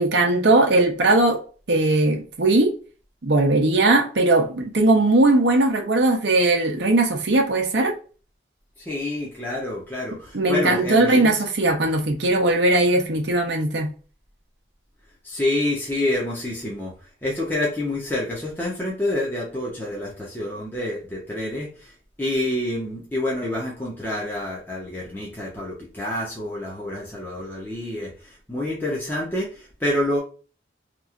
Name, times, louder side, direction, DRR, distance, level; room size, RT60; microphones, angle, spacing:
voice 1, 0.0-1.4 1.7-2.7 3.2-7.9 10.3-13.9, right 2 dB, 65° right, 0.7 m, -19 dB
voice 2, 8.8-11.4 15.2-16.9 17.2-30.2, left 1 dB, 10° left, 0.8 m, -28 dB
3.0 x 2.6 x 2.4 m
head